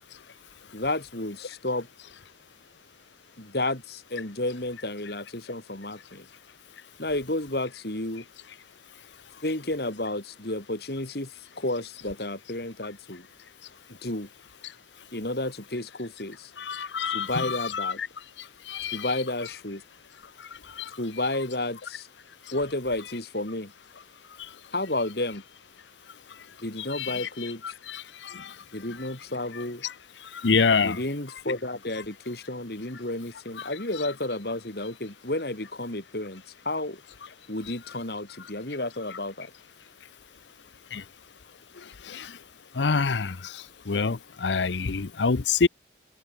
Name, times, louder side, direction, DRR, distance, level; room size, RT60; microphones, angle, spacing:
voice 1, 0.7-1.9 3.4-6.2 7.0-8.2 9.4-13.3 14.0-14.3 15.1-16.5 17.1-18.0 18.9-19.8 21.0-22.1 22.5-23.7 24.7-25.4 26.6-27.6 28.7-29.8 30.8-37.0 37.5-39.5, left 2 dB, 60° left, 3.3 m, -31 dB
voice 2, 16.6-18.1 18.7-19.5 20.8-20.9 26.9-28.5 29.5-29.9 30.4-31.0 33.6-33.7 33.9-34.1 39.1-39.2 40.9-41.0 42.1-42.3 42.8-43.5 43.9-45.7, left 5 dB, 85° left, 0.8 m, -27 dB
head